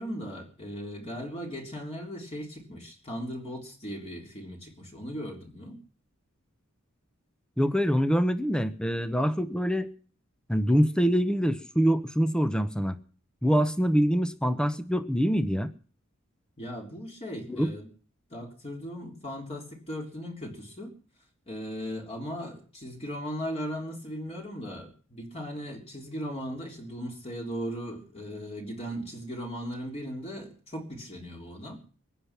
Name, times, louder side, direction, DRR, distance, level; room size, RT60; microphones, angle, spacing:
voice 1, 0.0-5.8 16.6-17.9 18.3-20.9 21.5-31.8, equal, 30° left, 0 dB, 3.6 m, -38 dB
voice 2, 7.6-9.9 10.5-13.0 13.4-15.7 17.5-17.7, equal, 5° left, 11 dB, 1.0 m, -25 dB
23.5 x 10.0 x 6.0 m, 0.42 s
head